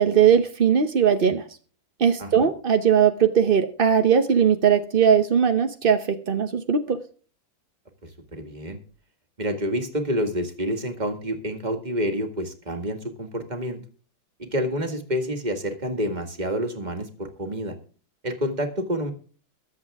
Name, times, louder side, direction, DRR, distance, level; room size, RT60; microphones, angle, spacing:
voice 1, 0.0-1.4 2.0-7.0, right 7 dB, 50° right, 7 dB, 0.6 m, -19 dB
voice 2, 8.3-8.8 9.4-13.8 14.4-17.8 18.2-19.1, equal, 20° right, 5 dB, 1.9 m, -28 dB
23.0 x 7.7 x 3.5 m, 0.41 s
omnidirectional pair, 2.2 m